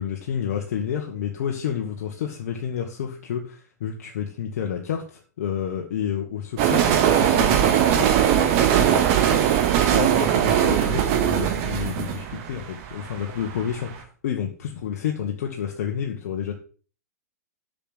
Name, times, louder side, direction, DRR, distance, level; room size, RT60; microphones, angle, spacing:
voice 1, 0.0-9.7 9.9-16.5, left 8 dB, 65° left, 2 dB, 1.7 m, -30 dB
sound 1, 6.6-13.6, right 10 dB, 50° right, 2.1 m, -20 dB
7.0 x 6.9 x 7.9 m, 0.40 s
hypercardioid pair, 105°, 9 cm